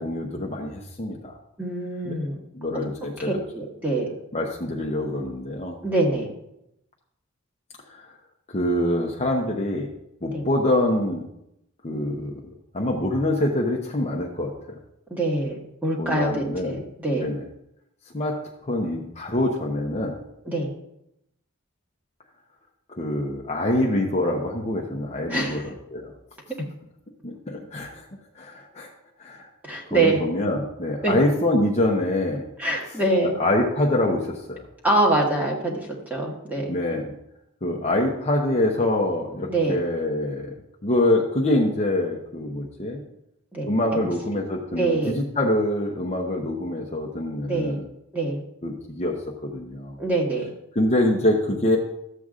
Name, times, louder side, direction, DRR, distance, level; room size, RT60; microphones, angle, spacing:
voice 1, 0.0-1.3 2.1-2.2 2.5-3.3 4.3-5.7 7.9-8.0 8.5-9.9 10.2-11.2 11.8-12.3 12.7-14.5 16.0-16.7 17.1-17.4 18.1-18.4 18.6-20.2 23.0-25.6 25.9-26.1 27.2-28.0 28.4-28.9 29.2-29.5 29.9-32.5 33.2-34.6 36.7-37.1 37.6-40.5 40.8-43.0 43.7-47.8 48.6-50.0 50.8-51.8, left 1 dB, 30° left, 0 dB, 0.8 m, -25 dB
voice 2, 1.6-2.4 2.7-2.8 3.2-4.1 5.8-6.3 10.3-10.5 15.1-17.3 20.4-20.7 25.3-25.7 29.6-30.2 31.0-31.1 32.6-33.3 34.8-36.8 39.5-39.8 43.5-44.0 44.7-45.2 47.5-47.8 48.1-48.4 50.0-50.5, right 2 dB, 10° right, -2 dB, 1.6 m, -24 dB
13.0 x 7.9 x 2.5 m, 0.81 s
head